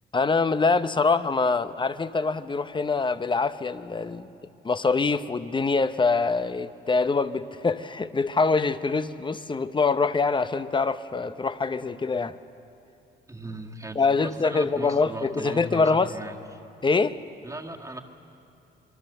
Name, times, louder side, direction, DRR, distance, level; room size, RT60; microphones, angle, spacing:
voice 1, 0.1-4.3 4.6-12.4 14.0-16.1 16.8-17.2, left 4 dB, 25° left, 12 dB, 0.8 m, -24 dB
voice 2, 13.3-16.4 17.4-18.0, right 2 dB, 15° right, 2 dB, 1.8 m, -38 dB
26.5 x 22.5 x 6.7 m, 2.7 s
cardioid pair, 90°, 20 cm